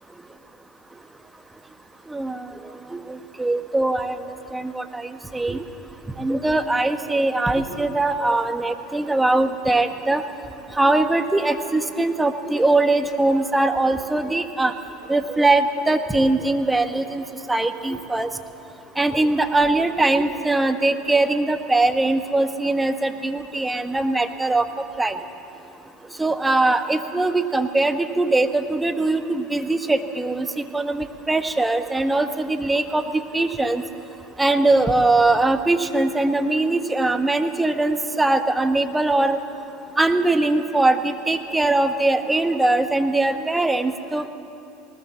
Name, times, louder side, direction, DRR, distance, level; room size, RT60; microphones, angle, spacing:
voice 1, 2.1-2.5 2.9-4.2 4.5-5.6 6.2-10.2 10.7-14.7 15.1-18.3 19.0-25.2 26.2-33.8 34.4-39.4 40.0-44.3, right 2 dB, 10° right, 8 dB, 1.3 m, -21 dB
20.0 x 19.5 x 7.2 m, 2.6 s
hypercardioid pair, 85°, 0 cm